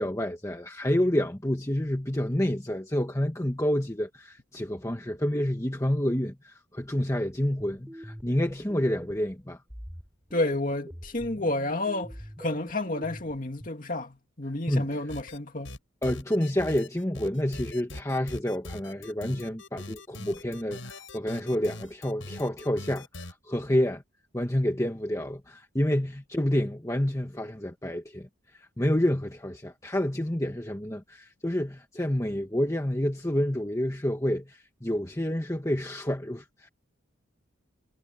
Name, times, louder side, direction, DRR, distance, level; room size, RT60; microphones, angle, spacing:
voice 1, 0.0-9.6 14.7-15.0 16.0-24.0 24.3-28.3 28.5-36.7, left 1 dB, 15° left, 1.4 m, -28 dB
sound 1, 7.3-9.3 9.7-13.7, equal, 10° right, 6.6 m, -44 dB
voice 2, 10.3-15.8, left 2 dB, 40° left, 2.4 m, -30 dB
sound 2, 15.1-15.4 15.6-23.3, left 2 dB, 75° left, 5.6 m, -42 dB
head